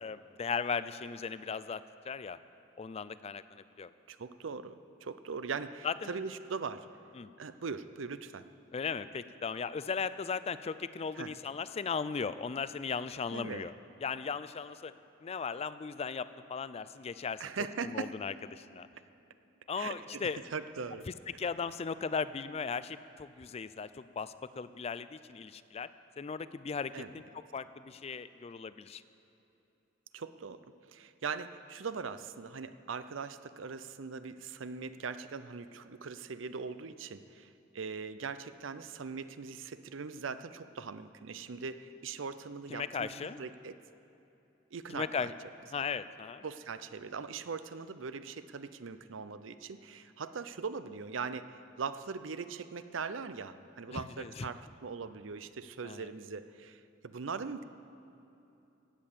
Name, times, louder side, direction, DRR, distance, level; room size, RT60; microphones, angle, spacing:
voice 1, 0.0-2.4 2.8-3.9 5.8-6.1 7.2-7.3 8.7-13.7 14.0-14.9 15.2-17.4 17.8-18.9 19.7-20.4 21.1-27.2 27.5-29.0 42.7-43.4 44.9-45.3 45.7-46.4 53.9-54.5 55.8-56.1, left 5 dB, 30° left, 14 dB, 0.4 m, -37 dB
voice 2, 4.1-6.9 7.4-8.4 11.2-11.3 13.3-13.7 17.4-18.1 19.8-20.2 20.5-21.1 26.9-27.1 30.1-30.6 30.9-43.8 44.7-45.3 45.7-45.8 46.4-57.6, right 5 dB, 75° right, 12 dB, 0.6 m, -41 dB
16.5 x 8.6 x 7.4 m, 2.9 s
head